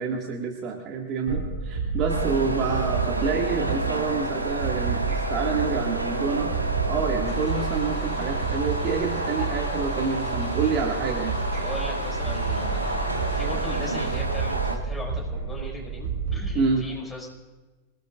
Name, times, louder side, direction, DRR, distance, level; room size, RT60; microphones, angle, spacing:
voice 1, 0.0-6.5 6.9-11.4 16.5-16.9, right 5 dB, 35° right, 1 dB, 2.2 m, -28 dB
sound 1, 1.3-16.5, right 5 dB, 55° right, 6.3 m, -30 dB
sound 2, 2.1-14.8, right 2 dB, 85° right, 2.1 m, -30 dB
sound 3, 7.2-14.2, left 3 dB, 25° left, 4.7 m, -43 dB
voice 2, 11.2-17.3, left 1 dB, 5° left, -2 dB, 5.9 m, -39 dB
26.5 x 17.5 x 2.5 m, 1.2 s
figure-of-eight pair, 90°, 0 cm